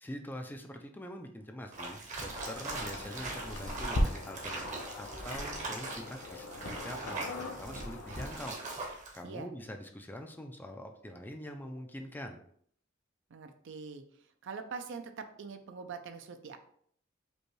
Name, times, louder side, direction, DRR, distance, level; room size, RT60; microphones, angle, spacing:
voice 1, 0.0-4.7 5.0-8.6 8.9-12.4, equal, 10° left, 4 dB, 0.3 m, -44 dB
sound 1, 1.7-9.2, right 2 dB, 35° right, 0.8 m, -41 dB
sound 2, 2.3-8.4, left 1 dB, 85° left, 0.7 m, -38 dB
voice 2, 13.3-14.0 14.4-16.6, right 5 dB, 65° right, 8 dB, 0.5 m, -43 dB
5.1 x 2.3 x 3.1 m, 0.62 s
head